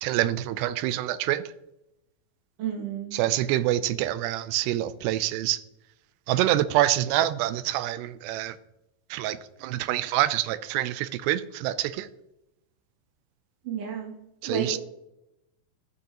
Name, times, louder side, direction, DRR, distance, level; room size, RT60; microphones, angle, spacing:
voice 1, 0.0-1.4 3.1-5.6 6.3-8.6 9.1-12.1 14.4-14.8, right 14 dB, 85° right, 2.6 m, -26 dB
voice 2, 2.6-3.2 13.6-14.2 14.4-14.8, right 7 dB, 45° right, 2.4 m, -31 dB
13.5 x 6.4 x 2.9 m
omnidirectional pair, 4.9 m